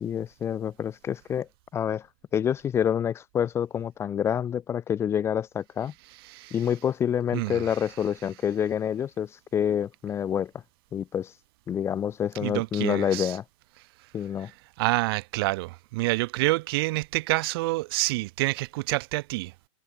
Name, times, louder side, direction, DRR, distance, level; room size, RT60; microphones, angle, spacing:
voice 1, 0.0-1.5 1.7-2.1 2.3-5.9 6.5-10.5 10.9-11.3 11.7-13.4 14.1-14.5, left 9 dB, 15° left, 0.7 m, -27 dB
voice 2, 7.3-7.6 12.4-13.3 14.8-19.5, right 21 dB, 45° right, 0.8 m, -27 dB
supercardioid pair, 165°, 18 cm